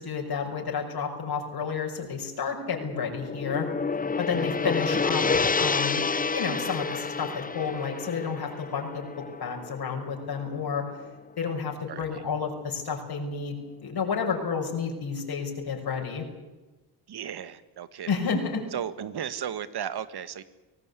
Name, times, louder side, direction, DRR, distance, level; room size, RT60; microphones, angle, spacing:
voice 1, 0.0-3.7 4.2-6.0 6.3-10.9 11.4-16.3 18.1-18.6, left 5 dB, 55° left, 1 dB, 5.9 m, -31 dB
Gong, 2.7-11.1, left 4 dB, 20° left, 0.8 m, -29 dB
voice 2, 11.9-12.2 17.1-18.1 18.7-20.4, right 9 dB, 55° right, 14 dB, 1.8 m, -35 dB
24.5 x 17.5 x 8.4 m, 1.2 s
supercardioid pair, 65°, 46 cm